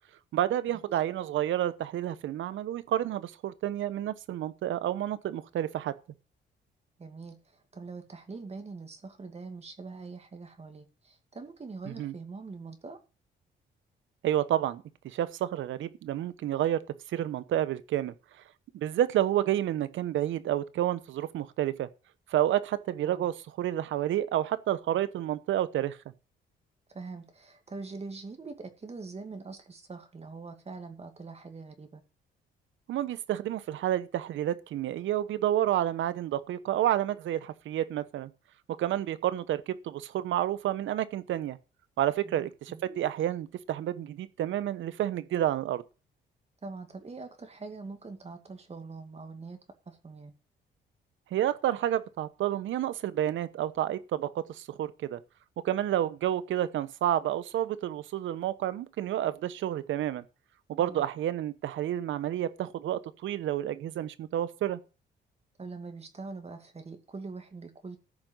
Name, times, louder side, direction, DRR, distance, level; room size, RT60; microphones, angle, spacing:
voice 1, 0.3-5.9 11.9-12.1 14.2-16.8 17.1-18.1 18.7-21.9 22.3-26.0 32.9-38.3 38.8-41.6 42.0-45.8 51.3-55.2 55.6-60.2 60.7-64.8, right 12 dB, 75° right, 1.1 m, -30 dB
voice 2, 7.0-7.4 7.7-13.0 23.1-23.3 26.9-32.0 42.2-42.8 46.6-49.6 49.9-50.3 60.8-61.0 65.6-68.0, right 4 dB, 30° right, 2.3 m, -43 dB
14.0 x 5.3 x 8.0 m
cardioid pair, 90°, 20 cm